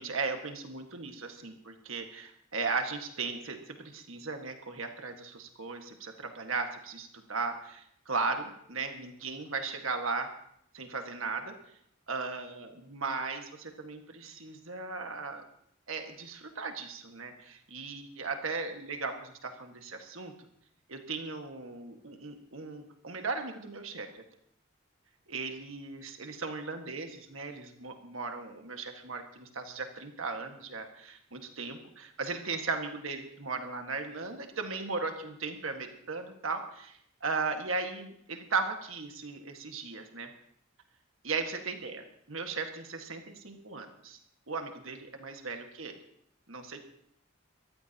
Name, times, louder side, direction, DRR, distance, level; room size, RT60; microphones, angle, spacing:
voice 1, 0.0-10.3 10.7-11.5 12.1-15.4 15.9-20.3 20.9-24.1 25.3-40.3 41.2-44.2 44.5-46.0 46.5-46.8, right 4 dB, 75° right, 4 dB, 1.7 m, -37 dB
23.0 x 14.5 x 2.9 m, 0.70 s
head